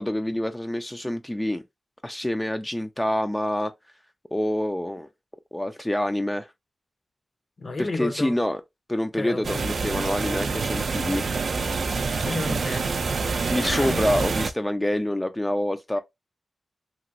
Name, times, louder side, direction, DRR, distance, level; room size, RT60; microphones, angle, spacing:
voice 1, 0.0-1.6 2.0-3.7 4.3-5.1 5.5-6.5 7.8-8.6 8.9-11.3 12.5-12.6 13.5-16.0, left 1 dB, 10° left, 0.3 m, -26 dB
voice 2, 7.6-8.3 9.2-9.7 11.8-12.9 13.4-14.0, left 2 dB, 50° left, 0.7 m, -32 dB
sound 1, 9.4-14.5, right 4 dB, 65° right, 0.3 m, -27 dB
2.9 x 2.6 x 2.5 m
cardioid pair, 75°, 0 cm